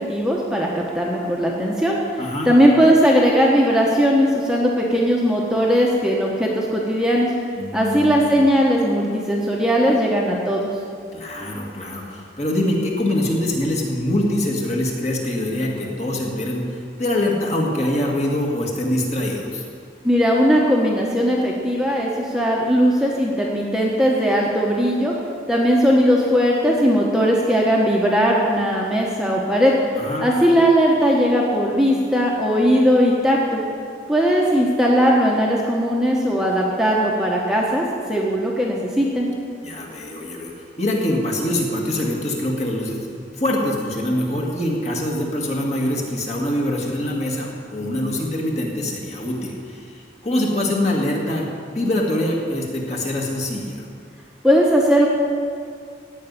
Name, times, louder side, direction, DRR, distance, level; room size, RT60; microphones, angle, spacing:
voice 1, 0.0-7.3 7.7-10.7 20.0-25.1 25.5-29.7 30.2-33.6 34.1-39.3 54.4-55.1, equal, 5° right, -3 dB, 1.1 m, -18 dB
voice 2, 2.2-2.5 7.6-8.3 11.1-19.7 29.9-30.3 39.6-40.5 40.8-43.1 43.3-51.4 51.7-53.8, left 1 dB, 40° left, -2 dB, 2.1 m, -24 dB
16.0 x 5.6 x 9.6 m, 2.2 s
head